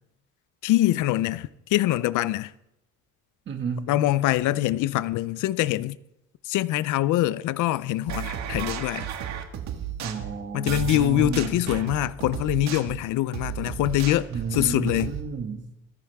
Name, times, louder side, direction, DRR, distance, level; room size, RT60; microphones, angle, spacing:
voice 1, 0.6-2.5 3.9-6.0 6.4-9.1 10.5-15.1, left 15 dB, 75° left, 0.6 m, -24 dB
voice 2, 3.5-3.9 10.0-11.6 14.3-15.7, right 5 dB, 35° right, 1.8 m, -32 dB
sound 1, 8.1-15.2, right 8 dB, 60° right, 1.7 m, -34 dB
25.0 x 13.5 x 3.5 m
cardioid pair, 180°, 31 cm